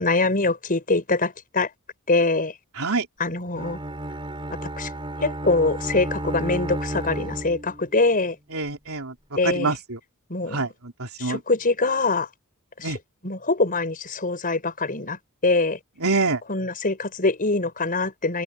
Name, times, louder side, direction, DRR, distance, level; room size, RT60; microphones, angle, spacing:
voice 1, 0.0-1.7 2.1-2.5 3.2-3.8 4.8-4.9 5.2-8.4 9.4-9.8 10.3-10.6 11.2-12.3 12.8-12.9 13.2-15.8 16.5-18.4, left 3 dB, 40° left, 5.5 m, -23 dB
Bowed string instrument, 3.5-8.0, right 1 dB, 25° right, 5.5 m, -32 dB
voice 2, 8.5-9.1 9.4-10.0 10.5-11.4 12.8-13.0 16.0-16.4, right 3 dB, 70° right, 4.0 m, -26 dB
open air
head